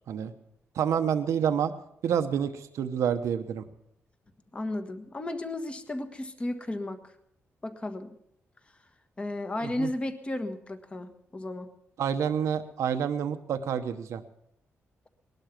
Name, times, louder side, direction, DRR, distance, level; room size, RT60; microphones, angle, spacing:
voice 1, 0.7-1.7 2.0-3.6 9.6-9.9 12.0-14.2, right 8 dB, 85° right, 8 dB, 1.0 m, -28 dB
voice 2, 4.5-7.1 7.6-8.1 9.2-11.7, left 1 dB, 20° left, 7 dB, 1.5 m, -34 dB
19.5 x 12.0 x 6.0 m, 0.72 s
cardioid pair, 120°, 5 cm